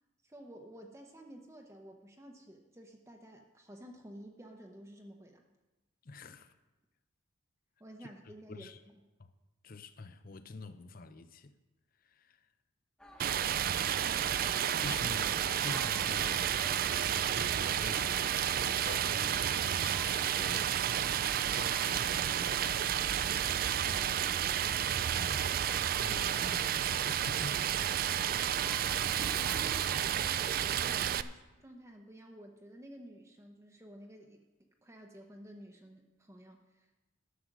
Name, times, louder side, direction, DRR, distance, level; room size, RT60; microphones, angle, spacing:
voice 1, 0.2-5.4 7.8-8.7 29.1-34.4 34.8-37.1, right 1 dB, 15° right, 0.8 m, -52 dB
voice 2, 6.1-6.5 8.0-8.1 8.5-8.8 9.6-11.5 12.2-12.4 14.8-16.7 17.2-19.5 19.8-20.8 21.5-22.9 23.8-24.6 25.1-25.4 26.0-27.0 27.3-27.7, left 3 dB, 45° left, 0.6 m, -46 dB
sound 1, 13.0-30.0, equal, 5° left, 1.1 m, -53 dB
Stream, 13.2-31.2, right 10 dB, 45° right, 0.3 m, -31 dB
11.5 x 7.8 x 6.0 m
head